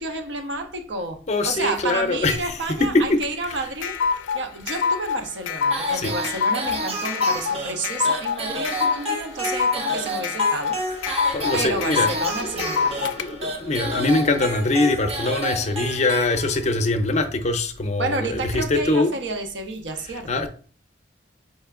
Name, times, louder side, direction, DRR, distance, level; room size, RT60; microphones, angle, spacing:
voice 1, 0.0-4.0 4.3-10.8 11.1-11.2 11.5-13.2 18.0-20.4, right 2 dB, 80° right, 0.7 m, -30 dB
voice 2, 1.3-3.2 3.5-3.6 5.9-6.1 11.1-12.1 12.4-19.1 20.1-20.5, left 2 dB, 40° left, 0.5 m, -23 dB
sound 1, 3.2-13.2, left 6 dB, 90° left, 0.4 m, -25 dB
sound 2, 5.7-16.8, right 2 dB, 35° right, 0.6 m, -31 dB
4.3 x 3.3 x 3.6 m
head